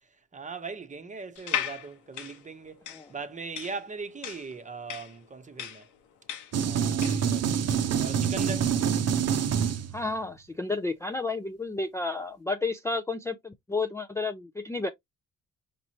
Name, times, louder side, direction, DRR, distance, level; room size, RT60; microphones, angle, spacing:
voice 1, 0.3-2.8 3.1-5.9 6.6-8.7, right 4 dB, 25° right, 0.8 m, -40 dB
sound 1, 1.4-7.3, left 9 dB, 75° left, 1.0 m, -36 dB
sound 2, 6.5-10.2, right 7 dB, 55° right, 0.7 m, -26 dB
voice 2, 9.9-14.9, left 3 dB, 10° left, 0.4 m, -31 dB
5.3 x 3.0 x 2.8 m
cardioid pair, 90°, 30 cm